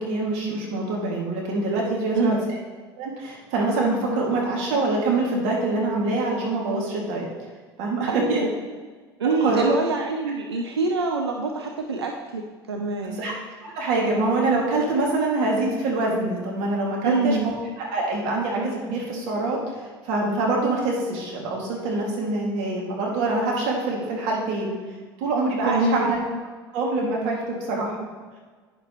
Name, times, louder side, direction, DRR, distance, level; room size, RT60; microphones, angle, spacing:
voice 1, 0.0-2.6 3.0-7.2 7.8-8.4 9.2-9.6 13.0-13.3 13.6-17.5 17.8-24.8 25.2-26.2 26.7-28.0, right 2 dB, 60° right, -2 dB, 2.0 m, -25 dB
voice 2, 8.1-8.5 9.2-12.4 12.7-13.2 17.0-17.5 25.7-26.1, right 3 dB, 90° right, 3 dB, 0.5 m, -25 dB
9.5 x 6.7 x 3.0 m, 1.5 s
hypercardioid pair, 75°, 13 cm